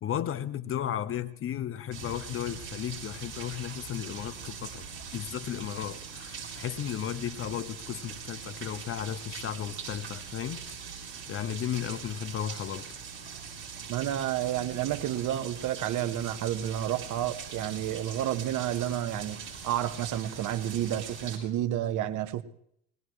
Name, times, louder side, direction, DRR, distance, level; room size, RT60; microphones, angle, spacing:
voice 1, 0.0-4.9 5.1-10.9 11.3-12.9, left 10 dB, 30° left, 0.9 m, -34 dB
sound 1, 1.9-21.4, right 6 dB, 30° right, 6.6 m, -42 dB
voice 2, 13.9-22.4, right 12 dB, 45° right, 1.4 m, -30 dB
22.0 x 19.0 x 3.2 m
supercardioid pair, 105°, 42 cm